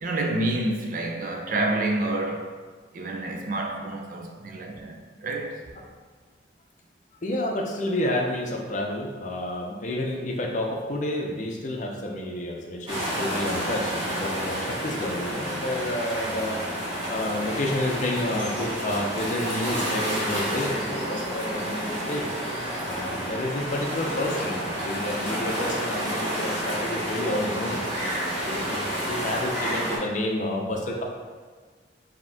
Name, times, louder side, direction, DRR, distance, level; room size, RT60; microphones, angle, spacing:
voice 1, 0.0-2.5 2.9-5.8, right 2 dB, 50° right, 2 dB, 0.5 m, -28 dB
voice 2, 7.2-16.6 17.1-22.3 22.8-27.8 28.3-31.0, left 1 dB, 45° left, 0 dB, 0.5 m, -30 dB
sound 1, 12.9-30.0, equal, 30° right, 1.4 m, -30 dB
4.9 x 2.8 x 3.4 m, 1.5 s
head